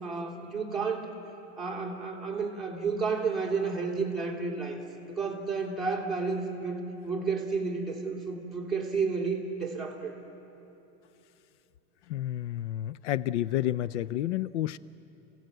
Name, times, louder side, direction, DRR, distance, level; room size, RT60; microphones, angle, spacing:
voice 1, 0.0-1.2 1.6-4.8 5.1-10.2, right 4 dB, ahead, -3 dB, 2.7 m, -31 dB
voice 2, 12.1-14.8, left 13 dB, 75° left, 18 dB, 0.6 m, -30 dB
29.0 x 17.0 x 8.0 m, 2.9 s
supercardioid pair, 160°, 35 cm